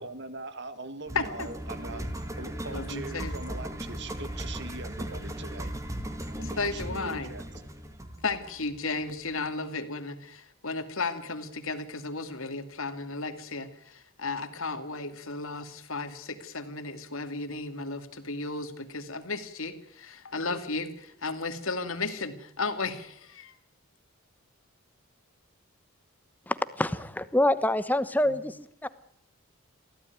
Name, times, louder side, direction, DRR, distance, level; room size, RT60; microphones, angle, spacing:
voice 1, 0.0-2.0 2.4-5.7 6.3-7.4, right 3 dB, 50° right, 12 dB, 2.0 m, -41 dB
voice 2, 1.1-1.5 1.8-2.1 2.7-3.3 6.6-7.3 8.2-23.5 28.2-28.4, left 3 dB, 70° left, 9 dB, 2.5 m, -34 dB
sound 1, 1.1-9.2, right 1 dB, 15° right, 2.0 m, -37 dB
voice 3, 26.5-28.6 28.8-28.9, left 1 dB, 10° left, 13 dB, 1.0 m, -26 dB
23.5 x 16.0 x 9.4 m, 0.68 s
head